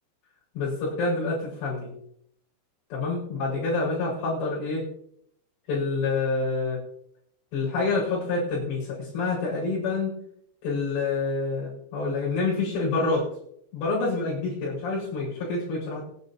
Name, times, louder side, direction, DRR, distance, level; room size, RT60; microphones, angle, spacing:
voice 1, 0.6-1.9 2.9-4.8 5.7-6.8 7.5-10.1 10.6-13.3 13.7-16.0, left 3 dB, 70° left, -5 dB, 7.1 m, -27 dB
24.0 x 9.8 x 2.8 m, 0.70 s
omnidirectional pair, 5.4 m